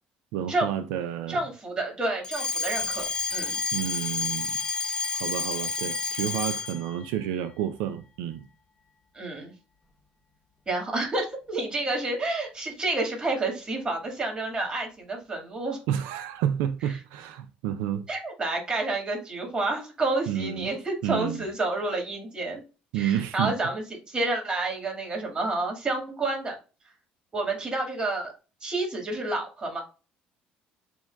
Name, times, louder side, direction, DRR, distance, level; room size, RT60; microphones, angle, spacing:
voice 1, 0.3-1.4 3.7-4.5 5.1-8.4 15.9-18.0 20.3-20.7 21.0-21.4 22.9-23.5, right 10 dB, 85° right, 0.4 m, -30 dB
voice 2, 1.3-3.0 3.3-3.6 9.2-9.5 10.7-15.8 18.1-22.6 22.9-26.6 27.3-28.3 28.6-29.8, right 2 dB, 25° right, 1.8 m, -29 dB
Alarm, 2.2-6.9, left 4 dB, 25° left, 0.5 m, -30 dB
6.8 x 2.3 x 2.2 m
supercardioid pair, 100°, 4 cm